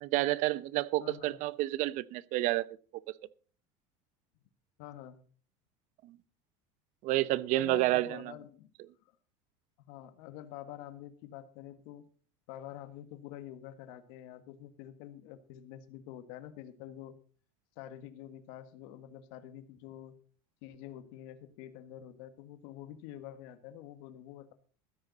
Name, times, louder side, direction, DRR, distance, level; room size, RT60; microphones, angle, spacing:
voice 1, 0.0-2.6 7.0-8.2, right 17 dB, 55° right, 0.8 m, -29 dB
voice 2, 1.0-1.4 4.8-5.2 7.5-8.7 9.9-12.0 12.5-17.2 17.8-20.2 20.6-24.5, left 11 dB, 70° left, 1.7 m, -47 dB
15.5 x 13.5 x 4.1 m
supercardioid pair, 140°, 15 cm